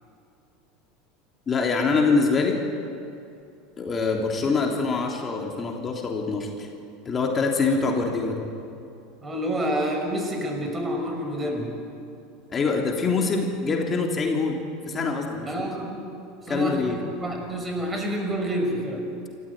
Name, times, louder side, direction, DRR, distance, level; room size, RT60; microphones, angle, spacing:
voice 1, 1.5-2.6 3.8-6.7 7.0-8.5 12.5-14.6 14.9-15.5 16.5-17.0, left 4 dB, 25° left, 1 dB, 3.3 m, -24 dB
voice 2, 9.2-11.7 15.5-16.1 16.5-19.0, equal, 20° right, 3 dB, 5.7 m, -28 dB
28.5 x 14.5 x 9.2 m, 2.6 s
figure-of-eight pair, 75°, 0 cm